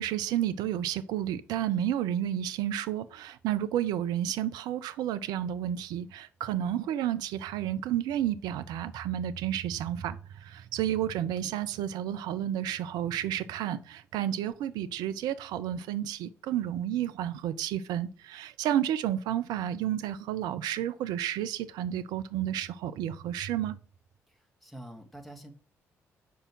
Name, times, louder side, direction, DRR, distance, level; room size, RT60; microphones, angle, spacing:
voice 1, 0.0-23.8, right 11 dB, 65° right, 0.5 m, -31 dB
voice 2, 24.3-25.5, right 1 dB, ahead, 1.8 m, -47 dB
4.9 x 4.6 x 6.1 m
figure-of-eight pair, 45°, 7 cm